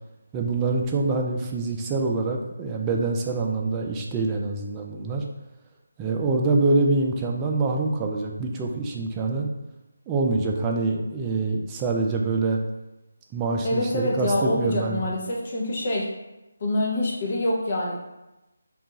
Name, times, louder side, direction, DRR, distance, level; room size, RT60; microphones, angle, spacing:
voice 1, 0.3-5.2 6.0-9.5 10.1-12.6 13.3-15.0, right 3 dB, 15° right, 0 dB, 0.3 m, -25 dB
voice 2, 13.6-16.1 16.6-18.0, left 1 dB, 45° left, -2 dB, 0.8 m, -25 dB
2.8 x 2.3 x 3.5 m, 0.97 s
figure-of-eight pair, 160°, 0 cm